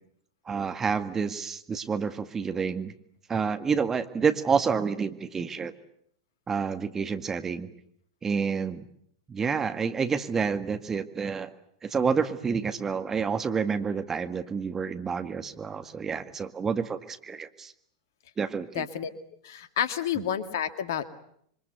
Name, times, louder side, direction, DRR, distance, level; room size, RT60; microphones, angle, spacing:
voice 1, 0.5-2.9 3.3-5.7 6.5-7.7 8.2-8.9 9.3-11.5 11.8-17.7 18.4-18.9, right 6 dB, 20° right, 8 dB, 1.9 m, -29 dB
voice 2, 18.7-19.1 19.4-21.1, left 9 dB, 60° left, 11 dB, 2.2 m, -30 dB
27.5 x 24.5 x 8.1 m, 0.69 s
figure-of-eight pair, 90°, 2 cm